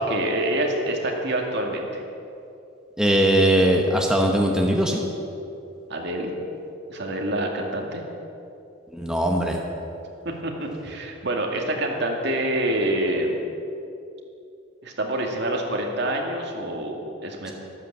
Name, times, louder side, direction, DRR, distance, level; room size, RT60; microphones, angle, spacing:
voice 1, 0.0-2.0 5.9-6.3 6.9-8.0 10.2-13.4 14.8-17.0 17.2-17.5, right 1 dB, 55° right, 1 dB, 2.1 m, -26 dB
voice 2, 3.0-5.0 8.9-9.6, right 1 dB, 5° right, 0 dB, 1.0 m, -20 dB
13.0 x 11.5 x 7.3 m, 2.7 s
head